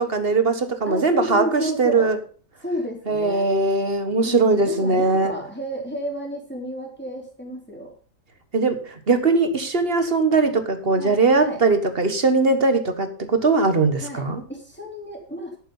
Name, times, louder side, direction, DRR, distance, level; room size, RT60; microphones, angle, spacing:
voice 1, 0.1-2.2 3.1-5.3 8.5-14.4, right 3 dB, 40° right, 10 dB, 1.5 m, -20 dB
voice 2, 0.9-2.1 2.6-3.5 4.2-7.9 11.0-11.6 14.0-15.6, equal, 5° left, -1 dB, 3.9 m, -32 dB
11.0 x 9.5 x 5.4 m, 0.40 s
omnidirectional pair, 1.8 m